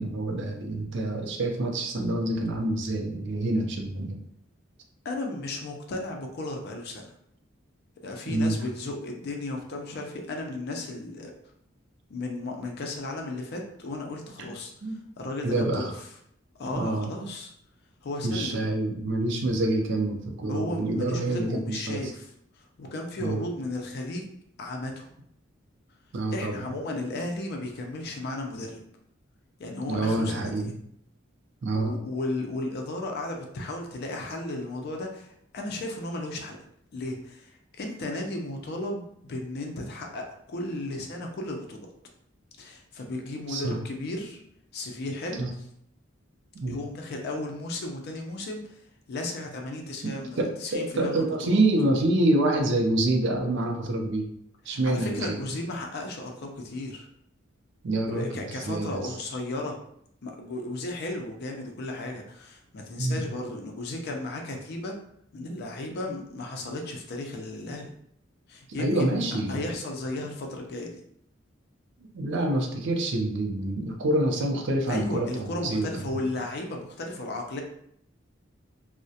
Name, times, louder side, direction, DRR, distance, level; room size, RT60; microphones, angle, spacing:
voice 1, 0.0-4.2 8.3-8.5 14.4-14.5 14.8-15.0 15.4-15.9 16.7-17.1 18.2-22.1 23.2-23.4 26.1-26.7 29.9-30.7 31.6-31.9 43.5-43.8 45.4-45.5 46.5-46.8 50.0-54.3 54.7-55.4 57.8-59.2 63.0-63.2 68.8-69.7 72.1-76.1, right 2 dB, 65° right, 2 dB, 0.4 m, -27 dB
voice 2, 5.0-7.1 8.0-11.3 12.1-14.7 15.2-15.9 16.6-17.5 18.0-18.7 20.5-22.3 22.6-24.3 24.6-25.1 26.3-28.8 29.6-30.7 31.7-36.6 36.9-41.8 42.6-44.4 44.7-45.5 46.7-48.8 49.1-51.6 54.7-57.1 58.1-59.8 60.2-64.9 65.3-67.9 68.5-69.2 69.5-70.9 74.9-77.6, left 2 dB, 55° left, 2 dB, 0.4 m, -34 dB
2.3 x 2.0 x 2.7 m, 0.71 s
head